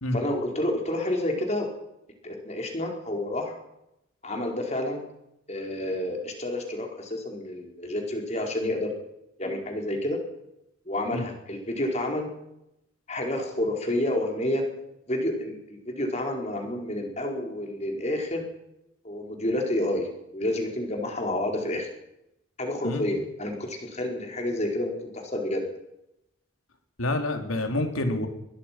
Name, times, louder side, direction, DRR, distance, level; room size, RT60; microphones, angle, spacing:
voice 1, 0.1-1.7 2.2-3.5 4.2-5.0 5.5-8.9 9.4-10.2 10.9-12.3 13.1-14.6 15.1-18.4 19.0-21.9 22.6-25.6, left 1 dB, 30° left, 2 dB, 4.7 m, -29 dB
voice 2, 27.0-28.3, left 1 dB, 90° left, 5 dB, 3.9 m, -27 dB
22.0 x 22.0 x 6.1 m, 0.85 s
head